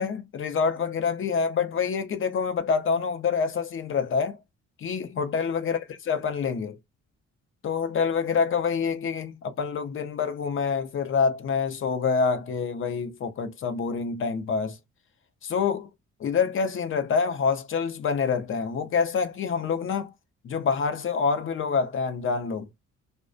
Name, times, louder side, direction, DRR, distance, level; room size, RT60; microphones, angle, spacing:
voice 1, 0.0-4.4 4.8-6.8 7.6-14.8 15.4-15.9 16.2-20.1 20.4-22.7, left 5 dB, 45° left, 0.6 m, -26 dB
2.3 x 2.1 x 2.5 m
cardioid pair, 90°, 30 cm